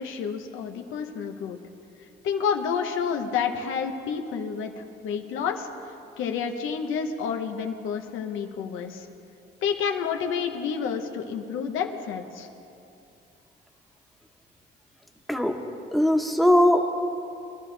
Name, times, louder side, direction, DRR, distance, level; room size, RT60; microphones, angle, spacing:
voice 1, 0.0-1.6 2.2-5.7 6.2-9.1 9.6-12.5, left 6 dB, 90° left, 4 dB, 1.2 m, -29 dB
voice 2, 15.9-16.9, left 1 dB, ahead, 2 dB, 1.3 m, -20 dB
23.5 x 12.0 x 3.4 m, 2.7 s
cardioid pair, 90°, 20 cm